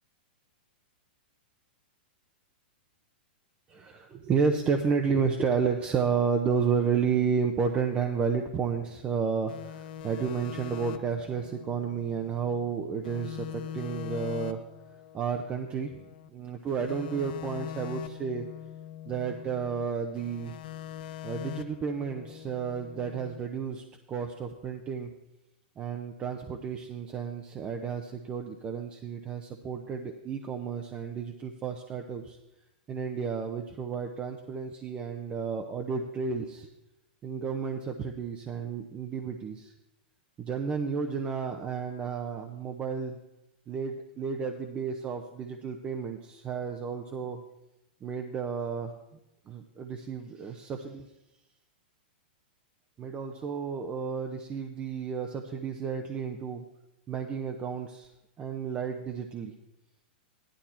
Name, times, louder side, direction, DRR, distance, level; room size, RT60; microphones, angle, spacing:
voice 1, 3.7-14.6 15.1-16.0 16.3-18.5 19.0-20.6 21.2-25.1 25.8-32.4 32.9-36.7 37.2-39.7 40.4-43.2 43.7-47.4 48.0-48.9 49.5-51.1 53.0-56.6 57.1-58.1 58.4-59.5, right 6 dB, 20° right, 4 dB, 0.8 m, -31 dB
sound 1, 9.5-12.7 13.0-16.3 16.7-19.9 20.1-23.4, left 10 dB, 60° left, 0.8 m, -42 dB
14.5 x 11.5 x 4.4 m, 0.91 s
hypercardioid pair, 140°, 6 cm